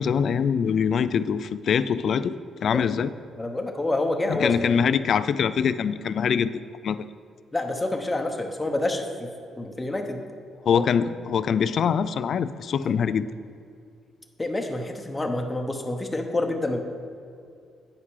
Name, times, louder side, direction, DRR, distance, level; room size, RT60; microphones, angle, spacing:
voice 1, 0.0-3.1 4.3-7.1 10.7-13.3, left 7 dB, 60° left, 14 dB, 0.3 m, -24 dB
voice 2, 3.4-4.5 7.5-9.3 9.6-10.2 10.7-10.8 12.7-12.9 14.4-16.8, left 2 dB, 15° left, 4 dB, 1.0 m, -28 dB
9.4 x 5.7 x 4.8 m, 2.4 s
cardioid pair, 90°, 0 cm